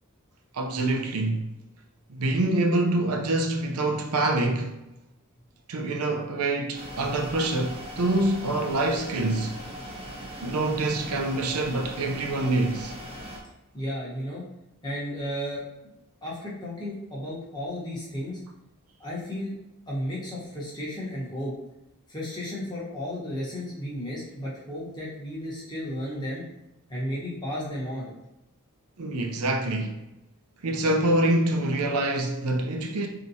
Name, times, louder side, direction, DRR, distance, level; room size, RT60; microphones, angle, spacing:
voice 1, 0.5-1.4 2.1-4.8 5.7-9.6 10.4-12.9 29.0-29.9 30.6-33.1, right 2 dB, 90° right, 0.6 m, -25 dB
sound 1, 6.7-13.4, equal, 30° right, 0.7 m, -40 dB
voice 2, 13.7-14.5 14.8-15.9 16.2-18.4 19.0-19.6 19.9-21.5 22.1-26.4 26.9-28.1, equal, 20° left, 1.1 m, -33 dB
4.5 x 2.9 x 2.7 m
head